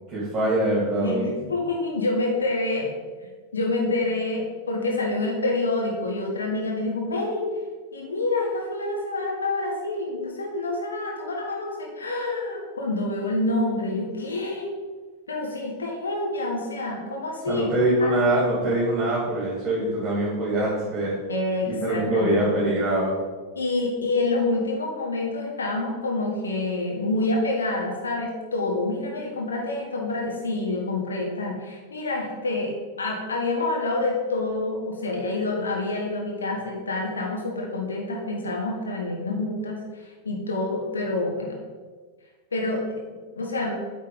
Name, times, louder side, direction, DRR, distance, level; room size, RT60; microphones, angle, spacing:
voice 1, 0.1-1.3 17.5-21.1 21.6-23.1, right 1 dB, 30° right, -6 dB, 2.7 m, -23 dB
voice 2, 1.0-2.9 3.5-7.5 7.9-14.7 15.3-17.7 18.0-18.1 21.3-22.4 23.5-32.7 33.0-41.5 42.5-43.7, left 2 dB, 70° left, -1 dB, 1.4 m, -27 dB
8.8 x 4.6 x 5.2 m, 1.4 s
figure-of-eight pair, 90°, 0 cm